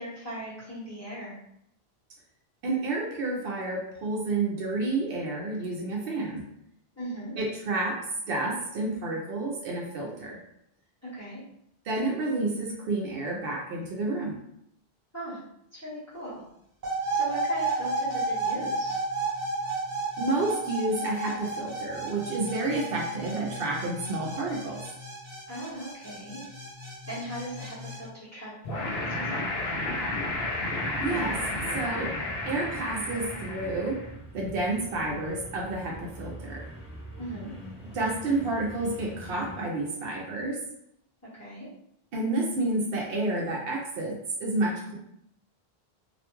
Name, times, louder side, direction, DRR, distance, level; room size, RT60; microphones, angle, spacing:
voice 1, 0.0-1.4 6.9-7.3 11.0-11.4 15.1-15.4 15.7-16.4 17.1-19.0 25.5-26.4 27.1-29.7 37.2-37.5 41.3-41.7, right 1 dB, 15° left, -9 dB, 1.0 m, -38 dB
voice 2, 2.6-6.4 7.4-8.0 8.3-10.4 11.9-14.4 20.2-24.8 31.0-31.4 31.7-32.1 32.5-34.0 34.3-36.6 37.9-40.6 42.1-44.9, right 2 dB, 70° right, -1 dB, 0.7 m, -30 dB
sound 1, 16.8-28.0, right 2 dB, 40° right, 1.2 m, -32 dB
sound 2, 28.6-34.1, left 2 dB, 70° left, 0.7 m, -32 dB
sound 3, 30.0-39.6, right 1 dB, 10° right, 0.4 m, -44 dB
2.4 x 2.2 x 2.9 m, 0.74 s
omnidirectional pair, 1.0 m